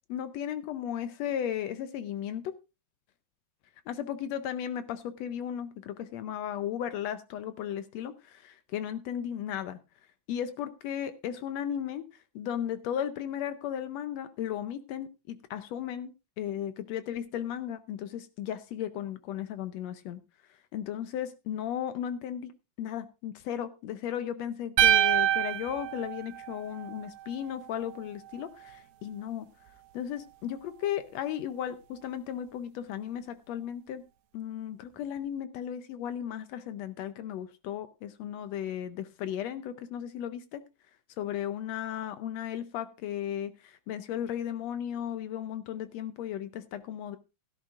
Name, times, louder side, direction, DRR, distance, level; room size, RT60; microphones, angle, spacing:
voice 1, 0.1-2.5 3.9-9.8 10.3-12.0 12.3-20.2 20.7-22.5 22.8-29.5 29.9-34.0 34.3-40.6 41.2-47.2, left 10 dB, 75° left, 11 dB, 1.7 m, -35 dB
sound 1, 24.8-27.0, right 12 dB, 80° right, 2.3 m, -25 dB
16.5 x 11.0 x 2.4 m, 0.28 s
omnidirectional pair, 3.5 m